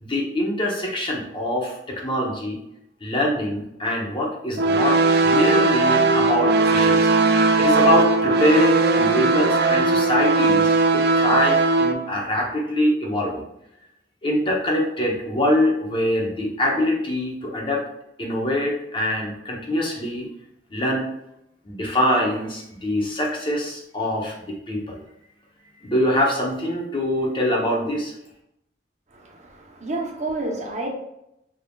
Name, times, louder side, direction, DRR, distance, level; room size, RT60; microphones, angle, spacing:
voice 1, 0.0-2.6 3.0-5.0 5.2-13.4 14.2-17.8 18.2-20.3 20.7-21.1 21.6-25.0 25.8-28.1, left 1 dB, 30° left, -2 dB, 0.9 m, -24 dB
sound 1, 4.6-11.9, right 3 dB, 65° right, 0.4 m, -18 dB
voice 2, 29.1-30.9, right 2 dB, 40° right, 0 dB, 0.8 m, -30 dB
5.4 x 3.5 x 2.3 m, 0.82 s
head